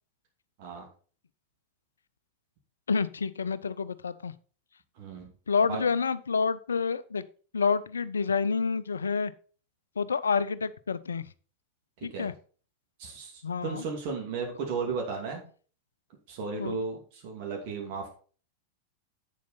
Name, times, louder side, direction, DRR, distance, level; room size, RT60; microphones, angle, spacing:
voice 1, 2.9-4.3 5.5-7.2 7.5-9.3 10.0-11.3 12.0-12.3 13.4-13.8 16.6-16.8, left 5 dB, 70° left, 16 dB, 0.5 m, -28 dB
voice 2, 5.0-5.3 5.7-5.8 12.1-12.3 13.0-15.4 16.3-18.1, right 4 dB, 45° right, 1 dB, 2.6 m, -35 dB
8.3 x 7.3 x 4.2 m, 0.40 s
figure-of-eight pair, 90°, 0 cm